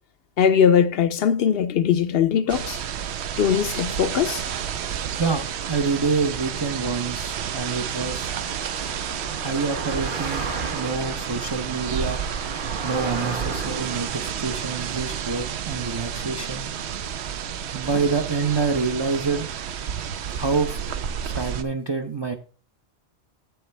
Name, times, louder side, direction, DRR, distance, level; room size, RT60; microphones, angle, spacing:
voice 1, 0.4-2.8 3.4-4.4, left 8 dB, 70° left, 0.7 m, -20 dB
sound 1, 2.5-21.6, right 8 dB, 80° right, 0.9 m, -31 dB
voice 2, 5.1-8.3 9.4-12.2 12.8-16.6 17.7-19.5 20.3-20.8 21.2-22.3, right 4 dB, 30° right, 0.5 m, -27 dB
Car passing by, 5.6-17.0, right 3 dB, 50° right, 1.3 m, -36 dB
7.8 x 7.8 x 3.2 m
omnidirectional pair, 1.1 m